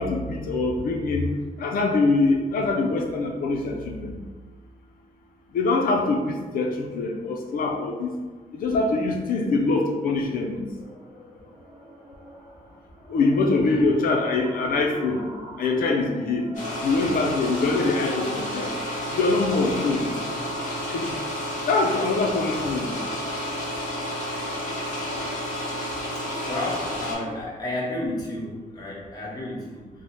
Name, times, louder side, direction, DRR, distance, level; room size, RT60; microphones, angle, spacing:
voice 1, 0.0-4.2 5.5-8.1 8.5-10.6 13.1-15.3 15.6-16.5 16.8-18.7 19.1-20.1 20.7-21.1 21.7-22.9, left 3 dB, 75° left, 1 dB, 0.4 m, -24 dB
sound 1, 10.8-27.3, right 1 dB, 15° right, 0.8 m, -43 dB
sound 2, 16.5-27.1, left 1 dB, 55° left, 1.4 m, -31 dB
voice 2, 26.1-29.9, left 2 dB, 25° left, -5 dB, 0.9 m, -32 dB
3.1 x 2.0 x 4.2 m, 1.3 s
wide cardioid pair, 150°, 15 cm